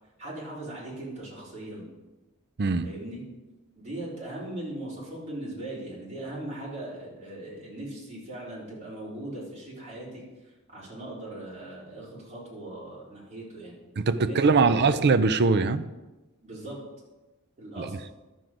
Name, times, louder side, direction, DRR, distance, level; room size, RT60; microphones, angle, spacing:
voice 1, 0.2-1.8 2.8-3.2 3.7-10.2 10.7-13.7 14.3-15.0 16.4-16.8 17.6-17.9, right 1 dB, 30° right, -7 dB, 4.2 m, -39 dB
voice 2, 2.6-2.9 14.0-15.9 17.8-17.9, right 4 dB, 50° right, 11 dB, 0.5 m, -22 dB
11.0 x 7.7 x 5.1 m, 1.1 s
head